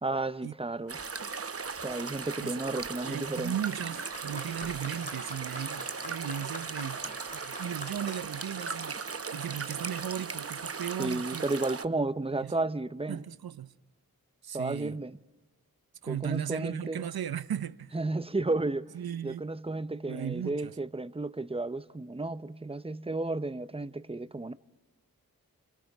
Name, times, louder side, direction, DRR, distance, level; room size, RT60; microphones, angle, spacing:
voice 1, 0.0-1.0 1.8-3.5 11.0-13.2 14.5-15.2 16.1-17.1 17.9-18.9 19.2-24.5, right 2 dB, 15° right, 0.8 m, -33 dB
sound 1, 0.9-11.9, right 5 dB, 40° right, 0.8 m, -38 dB
voice 2, 2.4-2.8 3.1-7.1 7.3-9.0 9.3-11.5 12.4-12.5 13.1-13.7 14.4-15.0 16.0-18.0 18.9-19.5 20.1-20.8, right 9 dB, 75° right, 0.7 m, -36 dB
Applause, 3.6-10.1, left 1 dB, 20° left, 2.3 m, -47 dB
29.0 x 27.5 x 3.6 m
cardioid pair, 40°, 37 cm